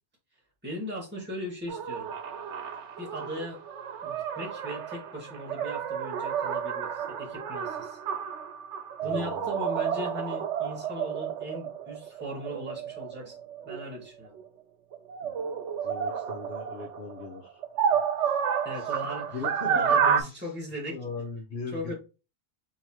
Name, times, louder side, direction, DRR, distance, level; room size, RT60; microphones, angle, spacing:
voice 1, 0.6-2.1 3.0-3.6 4.0-8.0 9.0-13.4 13.6-14.3 18.6-21.0 21.7-21.9, equal, 10° right, -6 dB, 2.1 m, -38 dB
sound 1, 1.7-14.4 14.9-20.2, right 7 dB, 90° right, 1.0 m, -31 dB
voice 2, 9.0-9.6 15.2-15.3 15.8-17.6 17.9-18.4 18.7-19.0 19.3-19.7 20.2-20.5 20.9-21.9, left 4 dB, 65° left, 0 dB, 1.2 m, -40 dB
4.5 x 3.7 x 2.9 m, 0.31 s
omnidirectional pair, 1.2 m